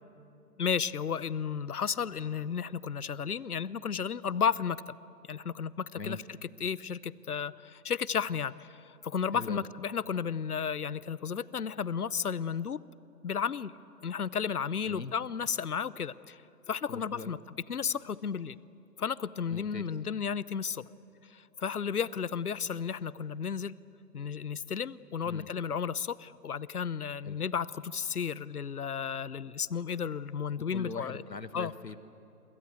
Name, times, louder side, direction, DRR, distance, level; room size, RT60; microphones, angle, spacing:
voice 1, 0.6-4.8 5.3-12.8 13.2-13.7 14.0-16.4 16.7-17.4 17.7-18.6 19.0-20.8 21.3-23.7 24.1-31.2 31.5-31.7, left 7 dB, 65° left, 20 dB, 0.8 m, -33 dB
voice 2, 9.3-9.6 14.9-15.1 16.9-17.3 19.5-19.9 25.2-25.5 27.2-27.4 30.6-32.0, left 4 dB, 85° left, 12 dB, 1.6 m, -41 dB
29.0 x 23.0 x 8.2 m, 2.9 s
figure-of-eight pair, 150°, 49 cm